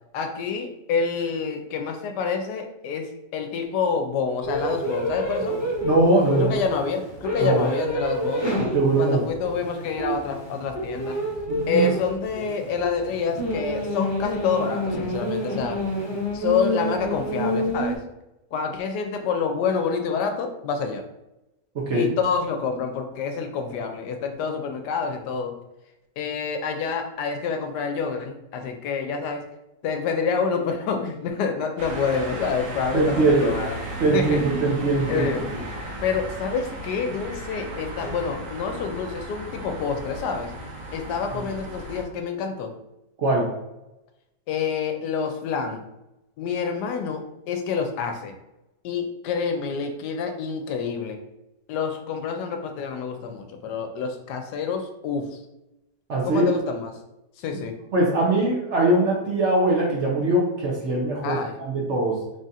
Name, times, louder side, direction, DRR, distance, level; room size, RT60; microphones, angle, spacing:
voice 1, 0.1-5.6 6.4-8.5 9.0-11.2 11.7-15.8 16.3-18.0 18.5-21.0 21.9-25.5 26.2-29.5 29.8-33.8 34.1-34.4 35.1-35.5 36.0-40.5 40.9-42.7 44.5-45.8 46.4-48.3 48.8-51.2 51.7-55.4 56.2-56.9 57.4-57.8 61.2-61.6, left 5 dB, 80° left, 5 dB, 1.1 m, -27 dB
sound 1, 4.4-18.0, equal, 25° left, 0.7 m, -28 dB
voice 2, 5.8-6.6 7.4-7.7 8.7-9.2 11.5-11.9 21.7-22.1 32.9-33.5 34.0-35.5 41.3-41.4 43.2-43.5 56.1-56.5 57.9-62.1, right 2 dB, 55° right, -2 dB, 0.9 m, -21 dB
sound 2, 31.8-42.0, right 1 dB, 80° right, 1.5 m, -35 dB
3.6 x 2.5 x 4.0 m, 0.93 s
omnidirectional pair, 1.8 m